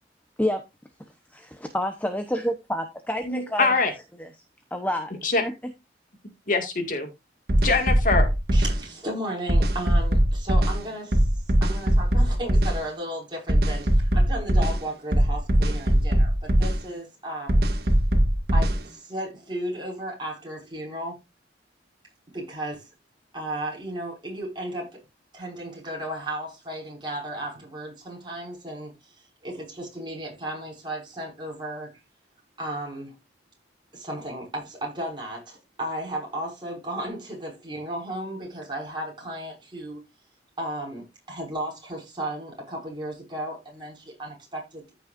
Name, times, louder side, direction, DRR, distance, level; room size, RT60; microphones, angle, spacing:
voice 1, 1.3-3.7 4.7-5.1 5.4-5.5, left 1 dB, 10° left, 0.9 m, -28 dB
voice 2, 3.2-3.9 5.2-5.4 6.5-7.1 7.6-8.3, left 3 dB, 50° left, 2.1 m, -23 dB
sound 1, 7.5-8.8 9.5-10.8 11.1-12.8 13.5-14.8 15.1-16.8 17.5-18.8, right 1 dB, 60° right, 1.8 m, -20 dB
voice 3, 8.5-11.3 11.6-17.6 18.5-21.2 22.3-22.9 23.3-25.0 25.3-28.9 29.4-31.9 32.6-33.1 33.9-40.0 40.6-44.8, right 1 dB, 25° right, 5.7 m, -34 dB
14.5 x 6.3 x 2.6 m
head